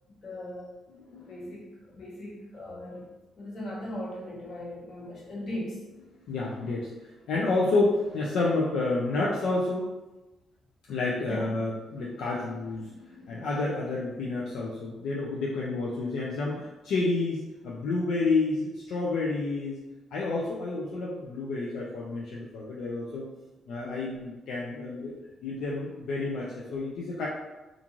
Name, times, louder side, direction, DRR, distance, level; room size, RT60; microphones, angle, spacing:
voice 1, 0.1-0.7 1.3-3.1 3.4-5.8 11.2-11.5, left 1 dB, 55° left, -5 dB, 1.0 m, -38 dB
voice 2, 1.1-1.4 6.3-9.9 10.9-19.8 20.1-23.3 23.7-25.1 25.4-27.3, left 3 dB, 80° left, -4 dB, 0.4 m, -30 dB
2.5 x 2.4 x 2.9 m, 1.1 s
cardioid pair, 90°, 0 cm